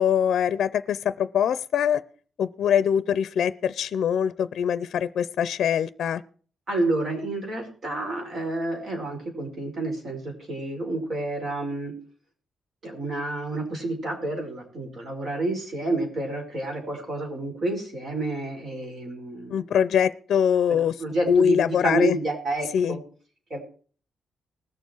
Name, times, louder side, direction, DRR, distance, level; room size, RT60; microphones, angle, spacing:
voice 1, 0.0-2.0 2.4-6.2 19.5-20.9 21.3-22.2 22.7-23.0, left 8 dB, 65° left, 16 dB, 0.5 m, -23 dB
voice 2, 6.7-11.9 12.8-19.6 20.7-23.0 23.5-23.6, right 2 dB, 45° right, 2 dB, 5.4 m, -29 dB
20.0 x 7.1 x 4.6 m, 0.42 s
cardioid pair, 130°, 0 cm